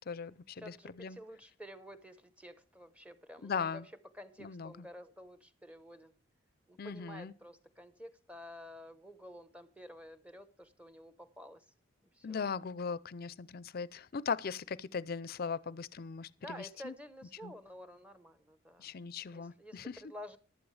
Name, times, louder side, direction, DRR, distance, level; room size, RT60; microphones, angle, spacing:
voice 1, 0.1-1.2 3.4-3.9 4.4-4.9 6.8-7.3 12.2-16.9 17.4-17.5 18.8-20.0, left 5 dB, 50° left, 0.5 m, -39 dB
voice 2, 0.6-3.8 4.1-6.2 6.7-11.7 12.0-12.5 16.4-19.0 19.3-20.4, equal, 5° right, 0.9 m, -51 dB
15.0 x 12.0 x 3.3 m
head